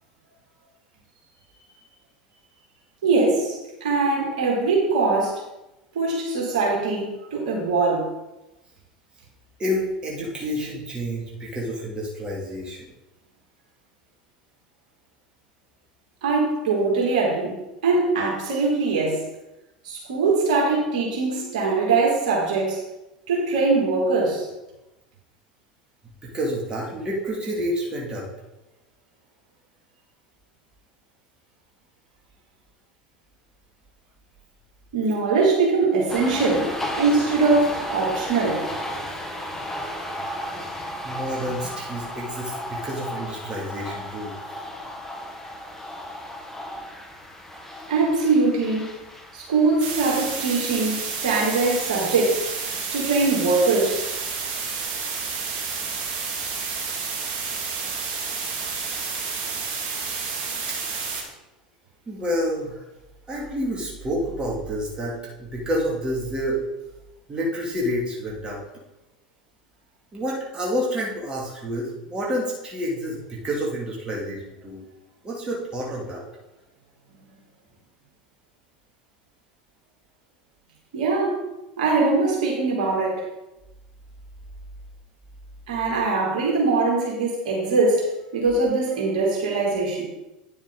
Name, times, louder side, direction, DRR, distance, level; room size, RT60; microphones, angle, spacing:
voice 1, 3.0-5.4 5.9-8.1 16.2-19.3 19.8-22.8 23.3-24.5 34.9-36.7 37.0-38.7 47.9-48.9 49.3-52.4 52.9-54.0 80.9-81.4 81.8-83.2 85.7-90.0, right 3 dB, 65° right, -2 dB, 3.0 m, -22 dB
voice 2, 9.6-12.9 26.2-28.3 41.0-44.3 62.1-62.8 63.3-66.6 67.3-68.6 70.1-74.8 75.2-76.2, equal, 20° right, -4 dB, 2.5 m, -29 dB
sound 1, 36.1-49.9, left 1 dB, 10° left, 1.5 m, -34 dB
sound 2, 49.8-61.2, right 5 dB, 45° right, 2.2 m, -30 dB
9.6 x 7.0 x 4.0 m, 0.97 s
figure-of-eight pair, 80°, 4 cm